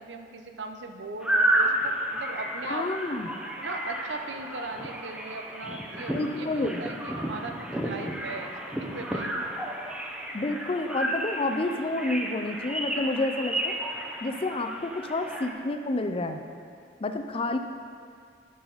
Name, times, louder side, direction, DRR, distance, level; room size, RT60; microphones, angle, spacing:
voice 1, 0.0-2.9 3.6-9.3 9.7-9.8, right 3 dB, 90° right, 5 dB, 0.7 m, -39 dB
sound 1, 1.2-15.5, right 1 dB, 5° right, 0.7 m, -31 dB
voice 2, 2.7-3.3 6.1-6.9 10.3-13.8 14.2-16.4 17.0-17.6, left 2 dB, 30° left, 7 dB, 0.5 m, -29 dB
11.0 x 6.3 x 4.0 m, 2.2 s
head